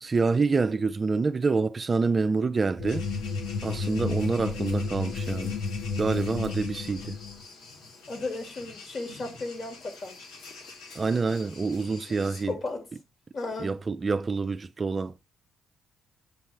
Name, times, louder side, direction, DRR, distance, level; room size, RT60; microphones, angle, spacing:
voice 1, 0.0-3.0 3.6-5.6 6.0-7.2 10.9-12.5 13.6-15.1, right 4 dB, 30° right, 0.4 m, -27 dB
sound 1, 2.8-7.4, left 4 dB, 70° left, 0.9 m, -32 dB
sound 2, 2.9-12.4, left 4 dB, 90° left, 2.3 m, -47 dB
voice 2, 8.1-10.2 12.2-12.8 13.3-13.8, left 3 dB, 45° left, 2.6 m, -35 dB
8.2 x 3.4 x 4.4 m
cardioid pair, 90°, 0 cm